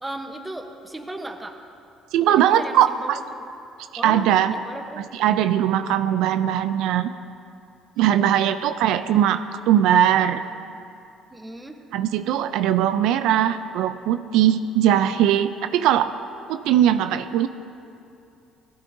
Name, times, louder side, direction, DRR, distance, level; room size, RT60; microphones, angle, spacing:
voice 1, 0.0-1.6 2.2-3.4 4.0-5.1 8.0-8.6 11.3-11.8, right 1 dB, 10° right, 4 dB, 0.9 m, -37 dB
voice 2, 2.1-3.2 4.0-4.5 5.2-7.1 8.0-10.4 11.9-16.1 16.5-17.5, right 10 dB, 80° right, 10 dB, 0.4 m, -20 dB
17.0 x 13.0 x 2.7 m, 2.7 s
cardioid pair, 120°, 0 cm